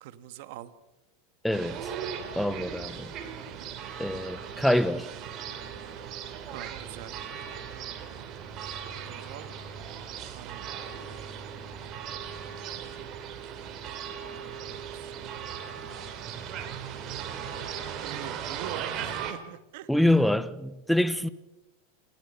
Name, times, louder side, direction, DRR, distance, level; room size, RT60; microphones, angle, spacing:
voice 1, 0.0-0.7 3.6-3.7 6.5-7.2 8.9-9.5 10.3-11.0 14.5-15.5 18.0-19.9, right 13 dB, 65° right, 1.5 m, -44 dB
voice 2, 1.4-1.8 2.4-3.1 4.0-5.1 19.9-21.3, left 1 dB, ahead, 0.9 m, -25 dB
sound 1, 1.5-19.3, right 8 dB, 40° right, 3.0 m, -38 dB
28.5 x 13.5 x 6.9 m
supercardioid pair, 120°, 0 cm